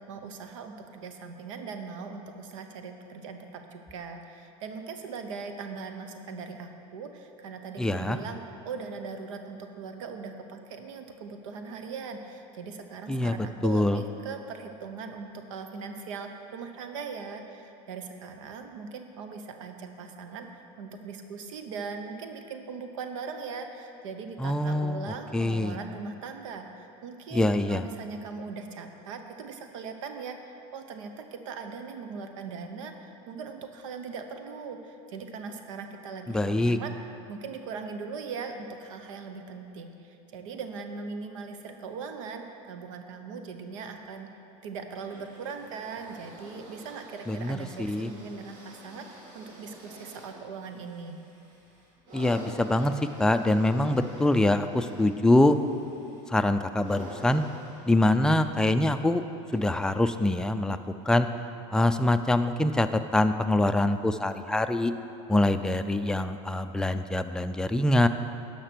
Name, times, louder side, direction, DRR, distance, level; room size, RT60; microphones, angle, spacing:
voice 1, 0.1-8.4 8.6-36.9 37.3-44.3 44.6-51.2, right 5 dB, 85° right, 6 dB, 0.9 m, -40 dB
voice 2, 7.8-8.2 13.1-13.3 13.6-14.0 24.4-25.0 25.3-25.8 27.3-27.8 36.3-36.8 47.3-48.1 52.1-52.9 53.2-55.6 56.3-57.4 57.9-59.2 59.5-60.8 61.1-61.3 61.7-62.9 63.1-64.9 65.3-68.1, left 1 dB, 5° left, 8 dB, 0.3 m, -24 dB
sound 1, 45.0-60.5 61.3-61.4, right 1 dB, 55° right, 2.7 m, -48 dB
11.0 x 5.9 x 6.0 m, 2.8 s
supercardioid pair, 125°, 16 cm